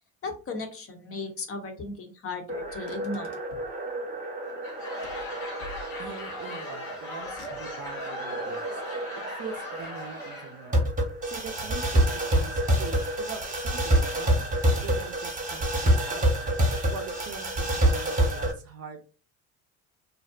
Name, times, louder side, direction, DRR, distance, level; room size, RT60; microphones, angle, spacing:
voice 1, 0.2-3.4, left 3 dB, 35° left, 4 dB, 0.7 m, -36 dB
sound 1, 2.5-18.5, right 1 dB, 20° right, 0.9 m, -28 dB
Car, 2.6-3.8 5.0-6.3 7.2-8.0, left 2 dB, 70° left, 0.7 m, -49 dB
Laughter / Crowd, 4.5-10.7, left 1 dB, 85° left, 1.1 m, -39 dB
voice 2, 6.0-10.9 11.2-14.5 14.8-16.5 16.9-19.0, right 5 dB, 40° right, 5 dB, 0.5 m, -43 dB
2.5 x 2.0 x 2.4 m, 0.35 s
hypercardioid pair, 60°, 39 cm